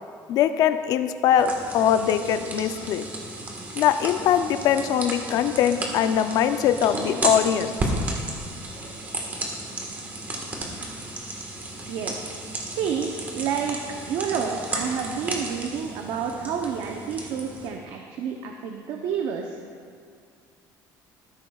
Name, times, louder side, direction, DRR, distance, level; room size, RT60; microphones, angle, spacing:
voice 1, 0.3-3.1 3.8-7.7, left 9 dB, 55° left, 9 dB, 0.5 m, -22 dB
sound 1, 1.4-17.7, right 2 dB, 20° right, 1.4 m, -33 dB
voice 2, 12.7-13.8 14.1-19.6, right 7 dB, 65° right, 3 dB, 0.7 m, -29 dB
13.5 x 12.0 x 2.3 m, 2.2 s
cardioid pair, 160°, 8 cm